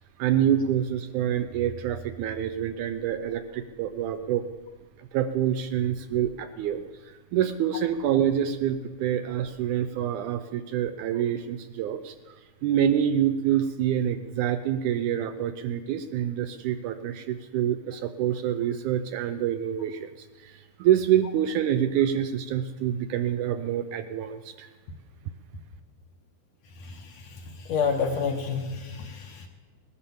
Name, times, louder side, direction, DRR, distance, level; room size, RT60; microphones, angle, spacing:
voice 1, 0.2-4.4 5.0-12.2 12.6-24.7, right 10 dB, 80° right, 9 dB, 1.9 m, -27 dB
voice 2, 26.8-29.5, left 5 dB, 65° left, 4 dB, 1.8 m, -29 dB
18.5 x 9.9 x 7.1 m, 1.4 s
omnidirectional pair, 3.9 m